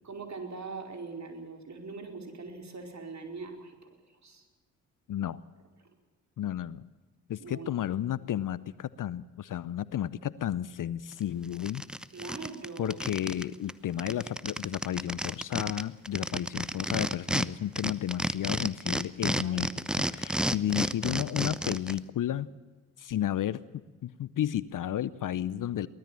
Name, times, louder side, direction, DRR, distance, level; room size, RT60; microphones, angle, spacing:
voice 1, 0.0-3.7 4.1-4.5 5.8-5.9 7.4-7.8 12.1-13.0 19.3-19.7, right 4 dB, 40° right, 4 dB, 4.8 m, -42 dB
voice 2, 6.4-6.8 7.3-11.8 12.8-19.7 20.0-22.5 23.0-23.6 24.0-25.9, left 11 dB, 50° left, 19 dB, 0.8 m, -32 dB
sound 1, 11.1-11.2 11.5-13.4 13.7-13.8 14.0-17.5 17.8-22.0, equal, ahead, 0.9 m, -31 dB
23.5 x 17.0 x 7.5 m, 1.3 s
hypercardioid pair, 40°, 42 cm